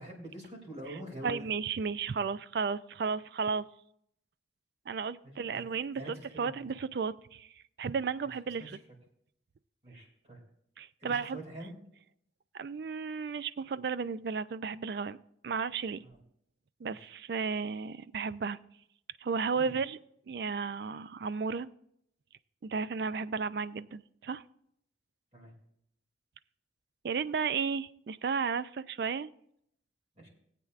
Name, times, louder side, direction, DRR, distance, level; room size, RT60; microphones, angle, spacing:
voice 1, 0.0-1.5 5.2-5.6 5.9-6.6 8.6-8.7 9.8-10.4 11.0-11.7 16.0-16.2 16.9-17.1 19.5-19.7 25.3-25.5 30.2-30.3, right 1 dB, 35° right, -1 dB, 2.7 m, -45 dB
voice 2, 1.2-3.7 4.9-8.8 10.8-11.4 12.5-15.2 15.4-16.0 16.8-18.6 19.2-20.0 20.3-21.7 22.6-24.4 27.0-29.3, right 5 dB, 55° right, 16 dB, 0.3 m, -34 dB
18.5 x 8.4 x 2.5 m, 0.71 s
head